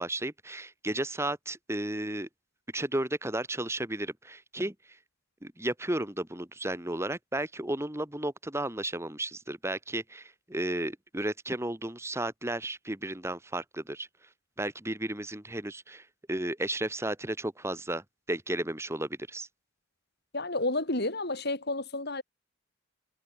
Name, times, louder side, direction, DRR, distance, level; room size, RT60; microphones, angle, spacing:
voice 1, 0.0-2.3 2.7-4.7 5.4-14.1 14.6-19.5, right 1 dB, 15° right, 1.9 m, -33 dB
voice 2, 20.3-22.2, left 2 dB, 50° left, 4.3 m, -30 dB
head